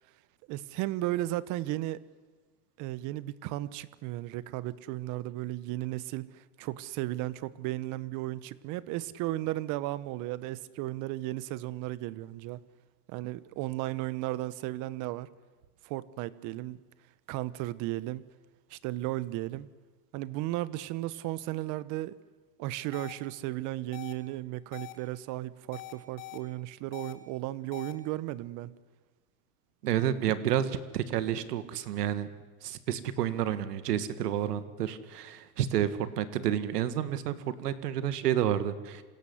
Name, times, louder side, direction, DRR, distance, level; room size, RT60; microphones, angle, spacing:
voice 1, 0.5-2.0 2.8-12.6 13.1-15.3 15.8-16.8 17.3-18.3 18.7-19.7 20.1-22.2 22.6-28.7, right 16 dB, 40° right, 1.1 m, -35 dB
sound 1, 22.9-23.1 23.9-24.1 24.7-24.9 25.7-26.4 26.9-27.1 27.7-27.9, left 19 dB, 55° left, 2.7 m, -43 dB
voice 2, 29.8-32.3 32.6-39.0, right 10 dB, 75° right, 2.1 m, -30 dB
27.0 x 17.0 x 8.1 m
supercardioid pair, 135°, 47 cm